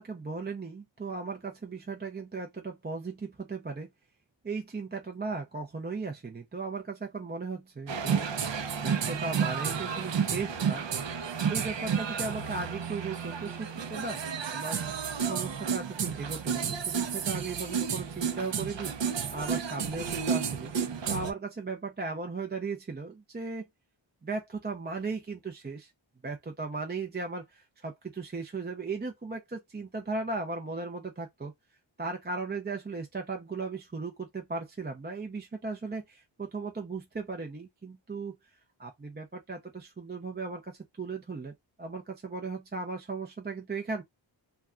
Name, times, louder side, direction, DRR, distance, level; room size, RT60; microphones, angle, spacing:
voice 1, 0.0-3.9 4.4-8.3 8.8-10.8 11.5-14.2 14.5-14.8 15.2-23.7 24.2-25.9 26.2-31.5 32.0-38.3 38.8-41.5 41.8-44.0, right 4 dB, 20° right, 0.5 m, -37 dB
sound 1, 7.9-21.3, right 7 dB, 65° right, 0.6 m, -31 dB
2.3 x 2.2 x 3.6 m
wide cardioid pair, 80°, 47 cm